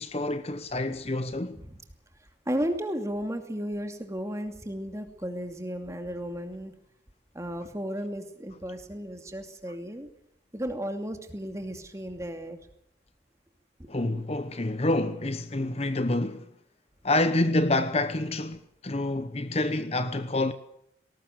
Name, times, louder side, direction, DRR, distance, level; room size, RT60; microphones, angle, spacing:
voice 1, 0.0-1.6 13.9-16.5 17.0-20.5, left 2 dB, 35° left, 0.9 m, -27 dB
voice 2, 2.5-6.7 7.3-10.1 10.5-12.6 14.0-14.1, equal, 15° right, 2.5 m, -34 dB
20.5 x 18.5 x 8.1 m
head